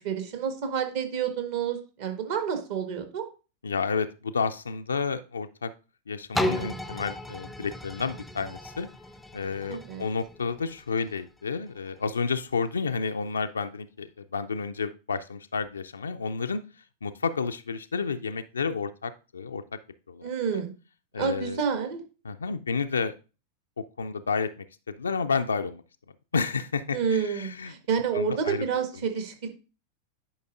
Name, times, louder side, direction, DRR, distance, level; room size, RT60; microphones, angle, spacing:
voice 1, 0.0-3.2 9.7-10.1 20.2-20.7 21.2-22.0 26.9-29.5, right 7 dB, 50° right, 6 dB, 1.4 m, -29 dB
voice 2, 3.6-5.7 6.1-8.9 9.3-16.6 17.0-19.6 20.1-20.3 20.5-20.6 21.1-21.6 22.2-23.1 23.8-24.5 24.9-25.8 26.3-27.7 28.1-28.6, left 5 dB, 75° left, 8 dB, 0.4 m, -30 dB
sound 1, 6.3-12.1 12.7-12.8, left 1 dB, 5° left, 0.5 m, -35 dB
10.0 x 5.1 x 2.5 m, 0.32 s
figure-of-eight pair, 90°, 0 cm